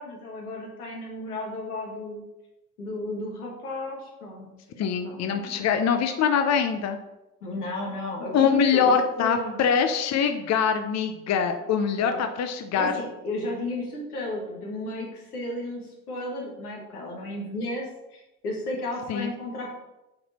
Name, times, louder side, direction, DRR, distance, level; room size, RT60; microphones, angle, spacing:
voice 1, 0.0-2.3 2.8-4.5 4.8-5.6 7.4-9.6 12.0-12.2 12.8-19.7, left 1 dB, 85° left, -1 dB, 1.8 m, -33 dB
voice 2, 4.8-7.0 8.3-12.9 19.1-19.3, left 7 dB, 40° left, 7 dB, 0.8 m, -23 dB
7.7 x 4.2 x 4.3 m, 0.95 s
hypercardioid pair, 65°, 44 cm